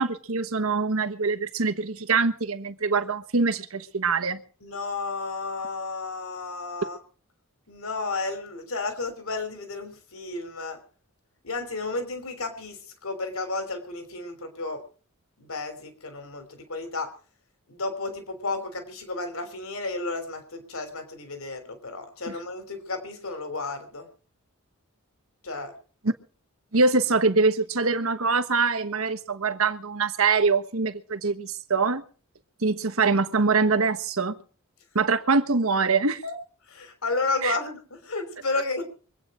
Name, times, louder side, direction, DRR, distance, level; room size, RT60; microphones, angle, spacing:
voice 1, 0.0-4.4 26.0-26.1 26.7-32.0 32.6-34.4 34.9-36.2 37.4-37.6, right 4 dB, 75° right, 11 dB, 1.3 m, -24 dB
voice 2, 4.6-7.0 7.7-10.8 11.4-14.8 15.4-17.1 17.7-24.1 25.4-25.7 36.2-36.4 36.7-38.8, left 3 dB, 75° left, 8 dB, 3.3 m, -32 dB
24.5 x 9.0 x 4.9 m, 0.41 s
head